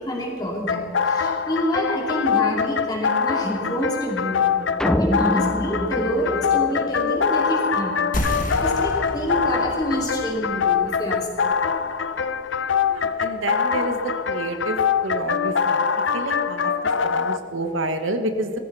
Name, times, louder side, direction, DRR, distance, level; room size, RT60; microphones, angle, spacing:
voice 1, 0.0-4.7 5.0-11.6, equal, 20° left, -1 dB, 2.6 m, -27 dB
sound 1, 0.7-17.4, left 6 dB, 70° left, 0.6 m, -24 dB
sound 2, 4.8-7.3, equal, 5° left, 0.4 m, -25 dB
sound 3, 8.1-13.3, left 1 dB, 40° left, 1.7 m, -33 dB
voice 2, 12.9-14.0 14.3-14.8 15.0-15.8 16.1-16.7 17.1-18.5, right 2 dB, 85° right, 7 dB, 1.3 m, -28 dB
18.0 x 14.5 x 4.2 m, 2.4 s
head